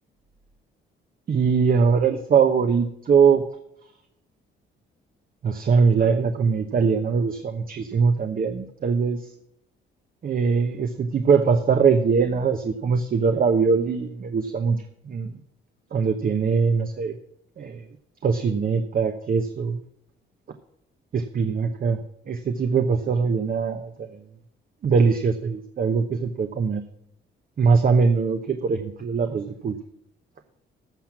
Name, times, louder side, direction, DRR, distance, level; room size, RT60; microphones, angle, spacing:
voice 1, 1.3-3.4 5.4-9.2 10.2-15.3 15.9-17.2 17.6-17.8 18.2-19.8 21.1-22.0 22.3-24.1 24.8-26.8 27.6-29.8, right 5 dB, 45° right, 6 dB, 0.9 m, -22 dB
15.0 x 6.0 x 5.9 m, 0.74 s
cardioid pair, 90°, 20 cm